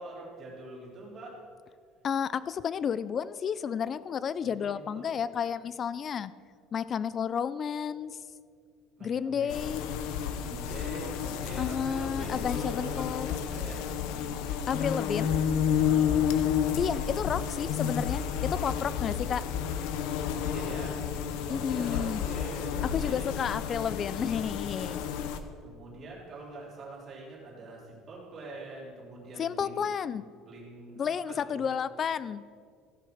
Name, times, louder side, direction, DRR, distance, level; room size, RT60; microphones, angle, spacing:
voice 1, 0.0-1.3 4.4-5.2 9.0-13.8 15.8-16.2 16.9-17.9 20.3-21.0 21.5-23.3 25.6-29.9 30.4-31.7, right 2 dB, 30° right, -5 dB, 3.4 m, -44 dB
voice 2, 2.0-6.3 6.7-8.2 9.0-9.8 11.6-13.3 14.7-15.4 16.8-19.4 21.5-22.2 22.8-25.0 29.4-30.2 31.0-32.5, left 7 dB, 30° left, 17 dB, 0.3 m, -31 dB
sound 1, 9.5-25.4, left 8 dB, 75° left, 0.8 m, -31 dB
15.5 x 5.9 x 6.5 m, 2.2 s
cardioid pair, 170°, 0 cm